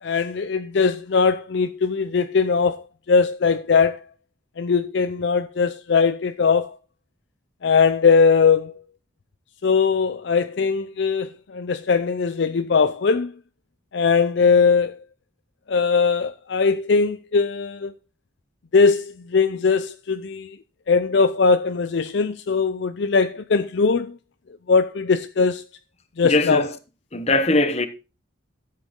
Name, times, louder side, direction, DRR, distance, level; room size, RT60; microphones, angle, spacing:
voice 1, 0.0-4.0 4.6-6.8 7.6-8.7 9.6-13.3 13.9-15.0 15.7-17.9 18.7-20.6 20.9-24.2 24.7-25.6 26.2-26.6, left 5 dB, 60° left, 0.5 m, -20 dB
voice 2, 26.2-26.7 27.1-27.9, left 2 dB, 30° left, 1.0 m, -20 dB
13.0 x 7.6 x 3.7 m
head